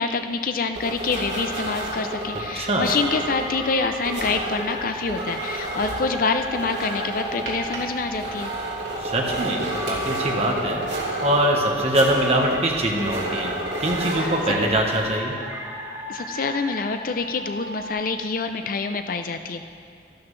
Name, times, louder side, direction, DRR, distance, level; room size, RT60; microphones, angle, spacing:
voice 1, 0.0-8.5 14.2-14.3 16.1-19.6, left 4 dB, 50° left, 8 dB, 0.5 m, -26 dB
sound 1, 0.7-15.1, right 1 dB, 85° right, 2.5 m, -31 dB
sound 2, 2.2-17.9, right 1 dB, 15° right, 1.0 m, -35 dB
voice 2, 2.5-2.9 9.0-10.8 11.2-13.5 13.8-15.3, right 1 dB, 35° right, 0 dB, 1.2 m, -23 dB
13.0 x 12.0 x 3.3 m, 2.3 s
head